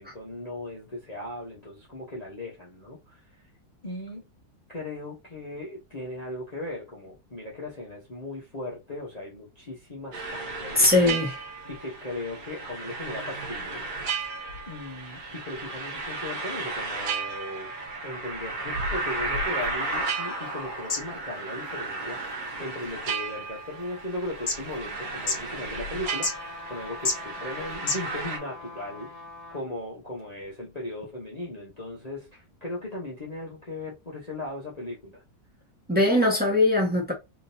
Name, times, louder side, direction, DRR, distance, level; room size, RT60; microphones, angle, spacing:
voice 1, 0.0-3.2 3.8-4.3 4.7-10.9 11.6-13.8 14.2-14.3 14.7-17.7 18.0-26.3 26.7-29.1 29.5-35.2, left 1 dB, 30° left, 1.0 m, -37 dB
sound 1, 10.1-28.4, right 3 dB, 70° right, 1.4 m, -34 dB
voice 2, 10.7-11.4 35.9-37.1, left 2 dB, 5° right, 1.2 m, -21 dB
sound 2, 19.2-28.4, left 3 dB, 55° left, 1.7 m, -37 dB
sound 3, 26.0-29.7 30.2-30.3, left 2 dB, 10° left, 2.2 m, -42 dB
3.8 x 3.3 x 2.7 m
omnidirectional pair, 1.6 m